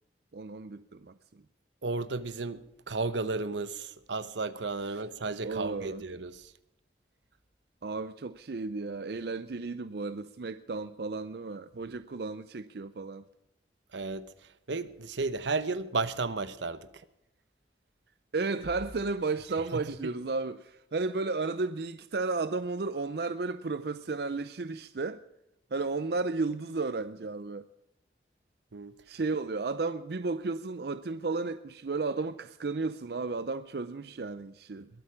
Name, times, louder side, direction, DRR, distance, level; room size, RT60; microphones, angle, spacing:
voice 1, 0.3-1.4 5.4-6.0 7.8-13.2 18.3-25.2 25.7-27.7 29.1-34.9, right 3 dB, 60° right, 0.5 m, -33 dB
voice 2, 1.8-6.5 13.9-14.3 14.7-16.9 19.7-19.9 28.7-28.9, right 3 dB, 85° right, 1.0 m, -33 dB
21.5 x 9.0 x 4.9 m
head